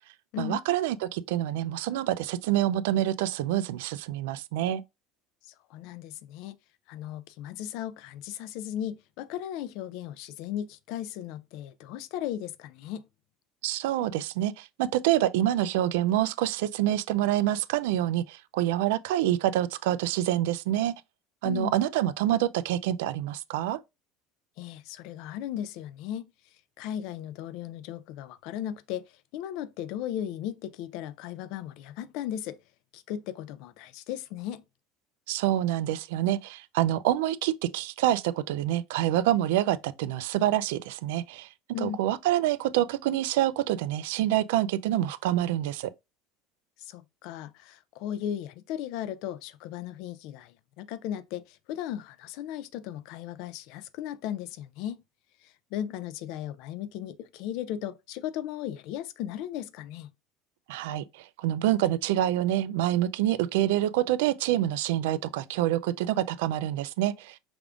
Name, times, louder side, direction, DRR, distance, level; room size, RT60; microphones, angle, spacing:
voice 1, 0.4-4.8 13.6-20.9 21.4-23.8 35.3-41.5 41.8-45.9 60.7-67.4, right 13 dB, 85° right, 0.3 m, -27 dB
voice 2, 5.5-6.6 6.9-13.1 21.4-21.7 24.6-26.2 26.8-29.1 29.3-32.6 32.9-34.6 41.7-42.0 46.8-55.0 55.4-60.1, left 11 dB, 60° left, 0.4 m, -36 dB
4.9 x 3.4 x 2.4 m
cardioid pair, 145°, 0 cm